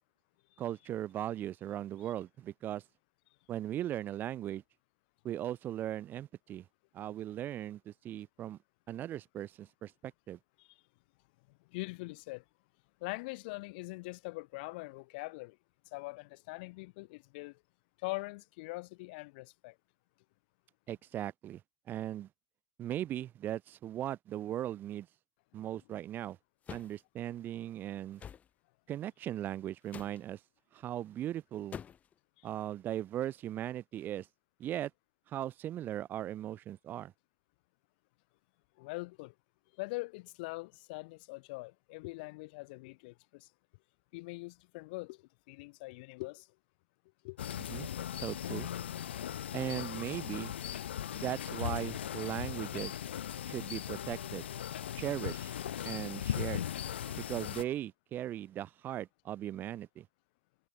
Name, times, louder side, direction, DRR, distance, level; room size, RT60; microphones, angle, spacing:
voice 1, 0.6-2.8 3.5-4.6 5.2-6.6 6.9-8.6 8.9-10.4 20.9-21.6 21.9-22.3 22.8-25.1 25.5-26.4 26.7-28.2 28.9-30.4 30.7-31.8 32.4-34.3 34.6-34.9 35.3-37.1 47.7-47.9 48.2-48.7 49.5-50.5 51.1-52.9 53.4-54.5 55.0-55.5 55.8-56.6 57.1-60.1, right 12 dB, 35° right, 3.3 m, -38 dB
voice 2, 11.7-12.4 13.0-15.6 15.9-17.6 18.0-19.8 32.4-32.5 38.8-39.3 39.8-43.5 44.1-46.5 47.2-47.4, left 24 dB, 60° left, 2.5 m, -42 dB
sound 1, 26.6-27.0 28.2-28.5 29.9-30.2 31.7-32.1, left 8 dB, 25° left, 1.6 m, -45 dB
sound 2, 47.4-57.6, left 10 dB, 80° left, 1.6 m, -38 dB
hypercardioid pair, 115°, 6 cm